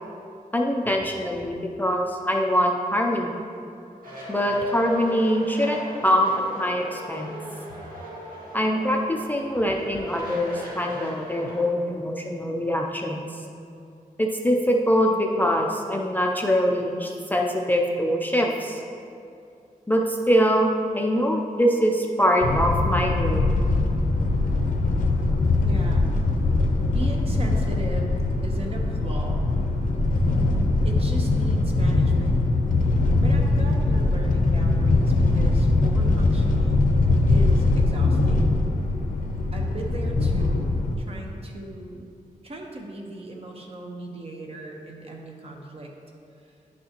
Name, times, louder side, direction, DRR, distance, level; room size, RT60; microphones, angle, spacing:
voice 1, 0.5-3.3 4.3-7.4 8.5-13.3 14.2-18.8 19.9-23.4, equal, 10° left, 0 dB, 0.4 m, -23 dB
sound 1, 4.0-11.7, equal, 80° right, 1.8 m, -39 dB
sound 2, 22.4-40.9, left 2 dB, 70° left, 0.7 m, -22 dB
voice 2, 25.6-26.1 26.9-28.2 28.4-29.4 30.8-32.4 33.2-38.5 39.5-40.7 41.0-42.1 42.4-45.9, right 2 dB, 45° right, 0 dB, 0.9 m, -37 dB
10.0 x 6.2 x 2.9 m, 2.5 s
wide cardioid pair, 160°, 14 cm